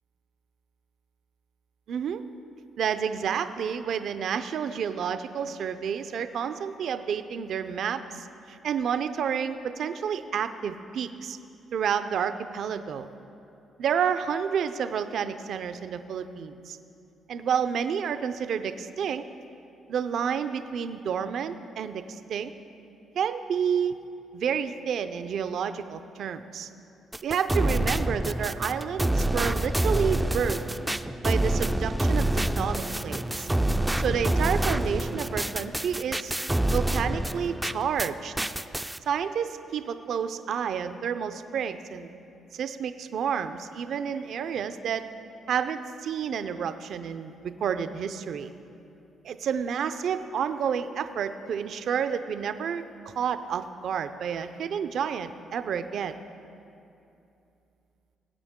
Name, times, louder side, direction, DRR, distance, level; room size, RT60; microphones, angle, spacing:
voice 1, 1.9-2.2 2.8-11.4 11.7-13.1 13.8-16.8 17.3-19.2 19.9-22.5 23.2-24.0 24.3-26.7 27.2-30.6 31.2-33.5 34.0-36.3 36.7-38.3 39.1-42.1 42.5-45.1 45.5-48.5 49.2-52.8 53.2-56.1, right 7 dB, 65° right, 10 dB, 0.5 m, -30 dB
sound 1, 27.1-38.1 38.4-39.0, right 1 dB, 10° right, 0.4 m, -27 dB
20.0 x 8.4 x 3.7 m, 2.7 s
cardioid pair, 90°, 0 cm